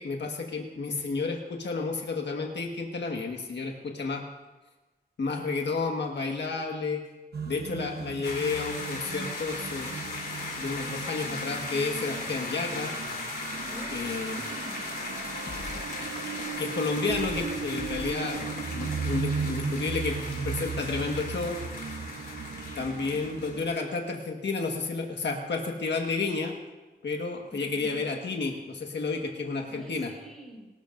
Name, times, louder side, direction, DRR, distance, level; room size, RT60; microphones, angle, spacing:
voice 1, 0.0-4.2 5.2-7.0 7.5-9.9 10.6-12.9 13.9-14.4 16.6-20.2 20.4-21.6 22.8-26.5 27.0-30.1, left 4 dB, 80° left, 1 dB, 1.6 m, -31 dB
sound 1, 7.3-23.7, right 5 dB, 65° right, 0.9 m, -36 dB
sound 2, 8.2-23.9, left 3 dB, 60° left, 3.5 m, -38 dB
voice 2, 13.7-15.4 15.7-16.1 27.5-28.1 29.7-30.7, right 1 dB, ahead, -3 dB, 5.2 m, -46 dB
sound 3, 15.5-19.6, left 3 dB, 45° left, 1.1 m, -44 dB
24.0 x 13.5 x 2.6 m, 1.2 s
wide cardioid pair, 140°, 18 cm